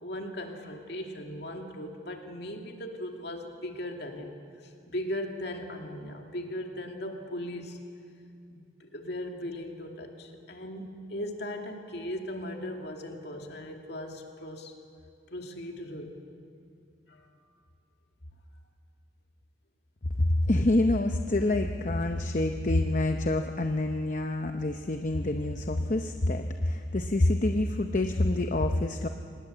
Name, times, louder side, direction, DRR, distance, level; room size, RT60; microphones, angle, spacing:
voice 1, 0.0-4.3 4.6-7.8 8.5-14.7 15.3-16.2 17.1-17.3, left 1 dB, 55° left, 3 dB, 2.6 m, -38 dB
voice 2, 20.2-29.1, left 1 dB, 40° left, 6 dB, 0.8 m, -27 dB
26.5 x 19.5 x 8.0 m, 2.4 s
head